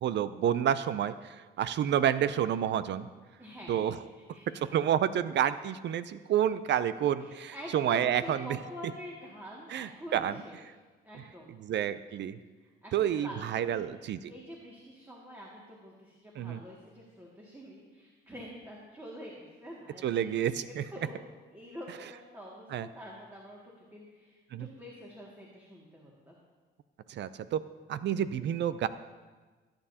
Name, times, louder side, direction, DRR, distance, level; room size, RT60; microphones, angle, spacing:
voice 1, 0.0-3.1 3.7-4.0 4.5-8.6 9.7-10.4 11.6-12.4 12.9-14.3 16.4-16.6 20.0-20.8 22.7-22.9 24.5-24.7 27.1-27.6 27.9-28.9, right 10 dB, 65° right, 14 dB, 0.5 m, -29 dB
voice 2, 1.7-2.0 3.4-4.7 7.2-10.6 11.0-11.6 12.6-13.8 14.3-20.5 20.9-21.2 21.5-26.4, equal, 10° right, -4 dB, 2.1 m, -47 dB
20.5 x 8.9 x 2.8 m, 1.3 s
cardioid pair, 90°, 20 cm